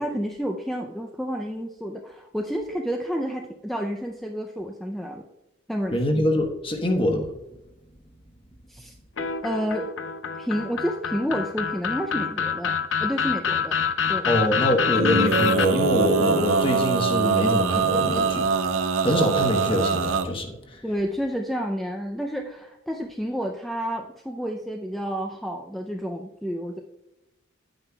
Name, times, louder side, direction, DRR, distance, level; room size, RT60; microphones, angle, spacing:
voice 1, 0.0-5.3 5.7-6.0 8.7-8.9 9.4-9.9 10.4-13.8 14.1-14.3 20.8-26.8, equal, ahead, 2 dB, 0.4 m, -30 dB
voice 2, 5.9-7.3 14.3-18.5 19.0-20.6, left 1 dB, 25° left, 3 dB, 1.1 m, -24 dB
sound 1, 9.2-15.7, left 6 dB, 75° left, 0.5 m, -26 dB
Male singing, 14.9-20.3, right 5 dB, 90° right, 0.6 m, -23 dB
9.8 x 8.9 x 2.3 m, 0.93 s
head